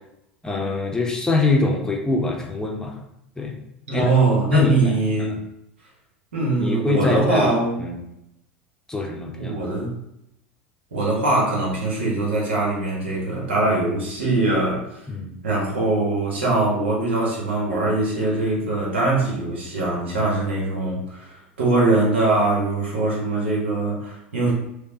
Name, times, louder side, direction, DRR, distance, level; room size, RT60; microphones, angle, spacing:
voice 1, 0.4-3.0 3.4-3.6 3.9-4.1 4.5-5.4 6.6-7.5 7.8-8.0 8.9-9.5 15.1-15.4, left 3 dB, 10° left, 0 dB, 0.7 m, -23 dB
voice 2, 3.9-5.4 6.3-7.8 9.4-9.9 10.9-15.0 15.4-24.5, right 2 dB, 80° right, -3 dB, 1.2 m, -22 dB
5.0 x 2.3 x 2.8 m, 0.82 s
hypercardioid pair, 85°, 6 cm